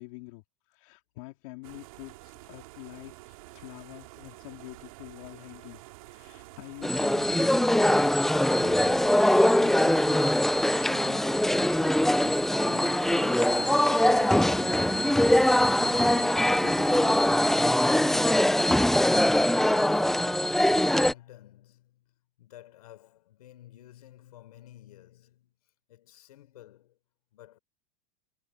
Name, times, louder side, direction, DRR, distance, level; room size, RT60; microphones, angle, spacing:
voice 1, 0.0-8.1 8.6-11.2 11.5-12.4 12.7-17.2, left 22 dB, 60° left, 2.7 m, -46 dB
sound 1, 1.6-18.2, right 20 dB, 70° right, 3.4 m, -49 dB
sound 2, 6.8-21.1, left 1 dB, ahead, 0.5 m, -22 dB
voice 2, 18.2-22.0 22.4-25.5 25.9-27.0 27.3-27.6, left 13 dB, 85° left, 4.9 m, -52 dB
supercardioid pair, 140°, 19 cm